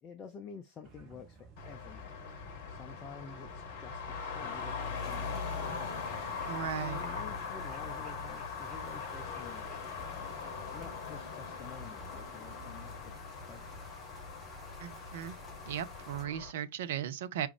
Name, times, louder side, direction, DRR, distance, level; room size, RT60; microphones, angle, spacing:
voice 1, 0.0-2.2 2.7-5.8 6.7-10.2 10.7-13.2 13.5-14.2, left 6 dB, 25° left, 0.5 m, -50 dB
sound 1, 0.8-11.0, right 4 dB, 35° right, 1.4 m, -55 dB
Traffic noise roadway noise, 1.6-16.5, left 5 dB, 50° left, 0.9 m, -41 dB
sound 2, 4.9-16.3, right 1 dB, ahead, 2.2 m, -53 dB
voice 2, 6.5-7.1 14.8-15.4 15.7-17.5, right 10 dB, 55° right, 0.5 m, -37 dB
4.8 x 3.0 x 3.3 m
figure-of-eight pair, 90°, 0 cm